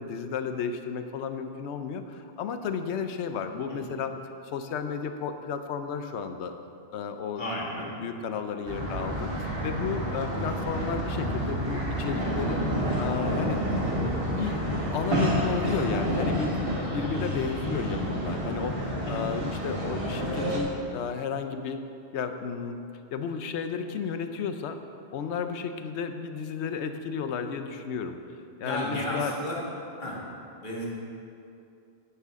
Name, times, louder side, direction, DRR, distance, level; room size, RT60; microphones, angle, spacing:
voice 1, 0.0-4.1 4.4-6.5 6.9-7.4 8.0-12.7 12.9-13.6 14.0-14.6 14.9-18.8 19.1-21.8 22.1-22.8 23.1-24.8 25.1-28.2 28.6-29.3, left 6 dB, 75° left, 8 dB, 0.9 m, -33 dB
voice 2, 7.4-7.9 19.0-19.2 28.6-29.6 30.0-30.2 30.6-30.9, left 1 dB, 45° left, -4 dB, 1.9 m, -33 dB
sound 1, 8.7-20.6, equal, 50° right, 1.7 m, -29 dB
10.5 x 9.2 x 3.6 m, 2.6 s
omnidirectional pair, 1.2 m